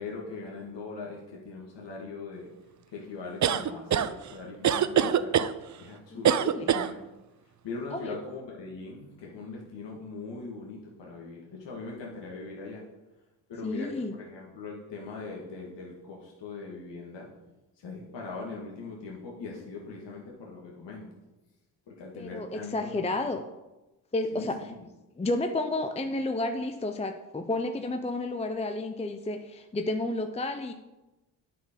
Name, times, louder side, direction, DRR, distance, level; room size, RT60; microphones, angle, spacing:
voice 1, 0.0-2.5 2.9-5.3 5.8-7.0 7.6-12.8 13.5-17.3 17.8-21.1 21.9-23.3 24.3-24.9, left 3 dB, 65° left, -2 dB, 1.6 m, -41 dB
sound 1, 3.4-4.1 4.6-5.5 6.2-6.9, right 9 dB, 40° right, 0.5 m, -23 dB
voice 2, 6.1-6.7 7.9-8.2 13.6-14.1 22.1-23.4 24.1-24.7 25.2-30.7, left 2 dB, 15° left, 7 dB, 0.6 m, -31 dB
9.2 x 4.5 x 5.1 m, 1.1 s
supercardioid pair, 50°, 46 cm